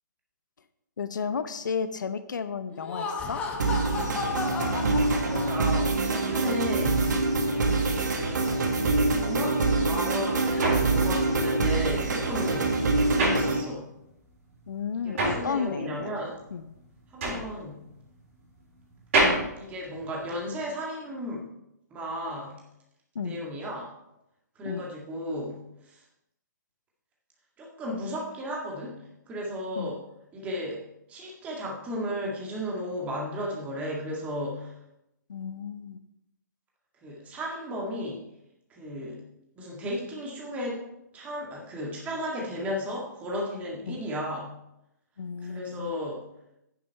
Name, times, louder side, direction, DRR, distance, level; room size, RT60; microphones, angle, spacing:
voice 1, 1.0-3.4 7.6-7.8 14.7-16.1 16.5-16.7 23.1-23.4 24.6-24.8 29.8-29.9 35.3-36.0 43.9-44.0 45.2-45.9, left 6 dB, 75° left, 11 dB, 0.9 m, -33 dB
Laughter, 2.7-6.0, left 4 dB, 10° left, 1.0 m, -34 dB
sound 1, 3.6-13.6, right 3 dB, 70° right, 1.8 m, -25 dB
voice 2, 5.2-7.1 8.0-8.4 9.2-12.7 13.1-13.9 15.0-16.4 17.1-17.8 19.6-21.4 21.9-22.5 23.2-23.9 24.6-25.6 25.8-26.0 27.6-29.0 29.3-30.0 30.3-30.8 31.1-34.7 37.0-38.2 38.7-39.2 39.6-40.8 41.1-44.6 45.4-46.2, equal, 15° right, -2 dB, 1.9 m, -34 dB
sound 2, 10.6-14.1 14.4-20.7, right 2 dB, 45° right, 4.0 m, -29 dB
9.1 x 7.4 x 4.5 m, 0.84 s
hypercardioid pair, 150°, 10 cm